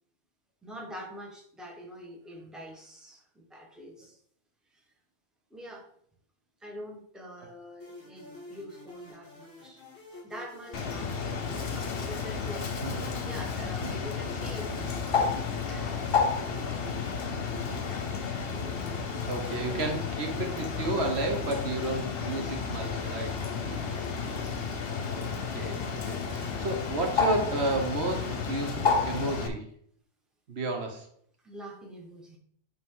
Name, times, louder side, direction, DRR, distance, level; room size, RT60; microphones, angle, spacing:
voice 1, 0.6-4.2 4.7-4.8 5.5-5.9 6.6-9.8 10.2-12.7 13.3-14.7 15.0-18.1 22.4-22.5 23.5-24.1 31.4-32.4, equal, ahead, -1 dB, 1.1 m, -45 dB
sound 1, 7.8-24.9, left 3 dB, 25° left, 3.1 m, -49 dB
Bird, 10.7-29.5, left 5 dB, 60° left, 1.0 m, -31 dB
voice 2, 19.3-23.4 25.1-25.8 26.1-29.7 30.5-31.1, right 2 dB, 70° right, 3 dB, 1.3 m, -32 dB
8.3 x 3.6 x 3.8 m, 0.64 s
omnidirectional pair, 1.2 m